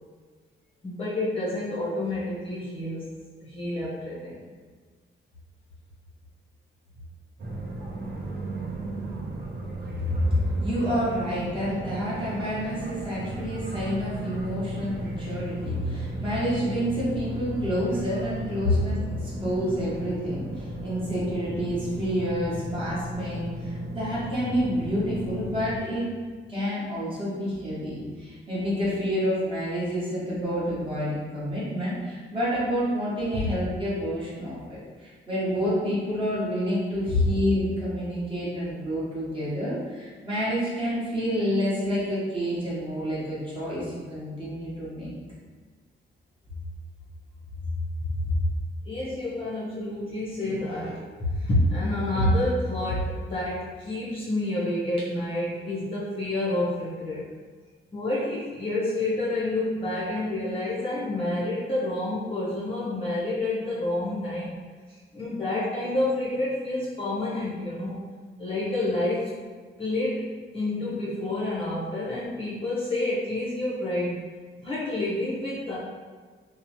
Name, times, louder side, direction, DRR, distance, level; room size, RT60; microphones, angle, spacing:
voice 1, 0.8-3.1 3.4-4.4 18.6-18.7 33.3-33.4 37.1-37.2 48.8-57.2 57.9-64.6 64.9-68.0 68.4-69.3 69.8-70.3 70.5-74.2 74.6-75.8, left 2 dB, 25° left, -9 dB, 0.7 m, -28 dB
sound 1, 7.4-25.8, right 1 dB, 50° right, 0.6 m, -35 dB
voice 2, 10.0-26.1 26.5-45.1 48.3-48.4, equal, 25° right, -10 dB, 1.0 m, -28 dB
2.8 x 2.0 x 2.9 m, 1.5 s
wide cardioid pair, 155°, 21 cm